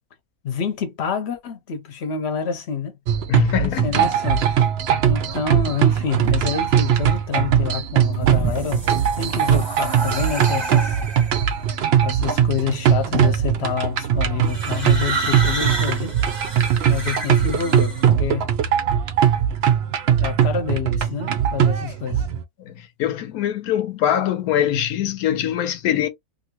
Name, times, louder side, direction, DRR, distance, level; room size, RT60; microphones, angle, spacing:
voice 1, 0.4-2.9 3.6-4.5 5.1-8.8 9.2-11.0 12.0-16.2 16.9-18.5 20.2-22.2, left 6 dB, 55° left, 0.9 m, -27 dB
sound 1, 3.1-22.4, right 9 dB, 65° right, 0.6 m, -20 dB
voice 2, 3.3-4.0 4.9-5.0 22.6-26.1, left 10 dB, 80° left, 1.1 m, -23 dB
sound 2, 8.1-11.5 12.4-12.9 14.4-18.1, right 3 dB, 20° right, 0.8 m, -30 dB
2.8 x 2.6 x 2.8 m
omnidirectional pair, 1.5 m